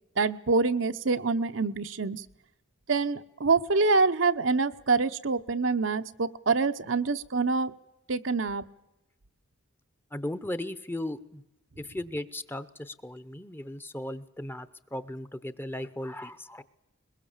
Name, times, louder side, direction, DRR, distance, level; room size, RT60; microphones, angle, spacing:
voice 1, 0.2-2.2 2.9-7.7 8.1-8.6, right 4 dB, 75° right, 8 dB, 0.9 m, -26 dB
voice 2, 10.1-11.4 11.8-16.6, left 1 dB, 10° left, 14 dB, 0.7 m, -37 dB
22.0 x 21.5 x 7.3 m, 0.93 s
head